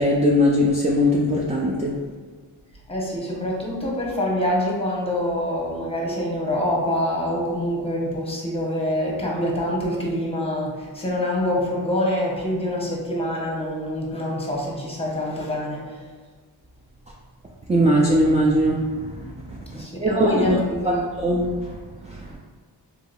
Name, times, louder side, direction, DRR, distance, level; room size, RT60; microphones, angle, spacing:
voice 1, 0.0-1.9 17.7-18.8 19.2-19.6 20.0-20.6 20.8-20.9 21.2-21.7 22.1-22.3, equal, 15° right, -2 dB, 0.3 m, -20 dB
voice 2, 2.9-16.0 19.7-21.1, left 1 dB, 15° left, -3 dB, 0.9 m, -25 dB
3.7 x 2.8 x 2.3 m, 1.4 s
cardioid pair, 65°, 45 cm